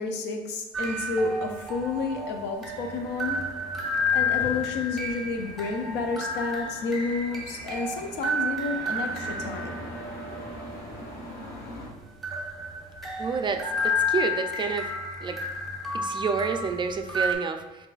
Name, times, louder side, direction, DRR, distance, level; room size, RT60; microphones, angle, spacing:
voice 1, 0.0-3.4 4.1-9.7, left 4 dB, 85° left, 5 dB, 0.6 m, -30 dB
sound 1, 0.7-17.3, left 2 dB, ahead, 0.8 m, -31 dB
sound 2, 2.7-11.9, left 1 dB, 70° left, 1.3 m, -43 dB
voice 2, 13.2-14.9 15.2-15.4 15.9-17.9, right 5 dB, 30° right, 6 dB, 0.3 m, -29 dB
6.1 x 2.5 x 2.4 m, 1.1 s
cardioid pair, 110°, 17 cm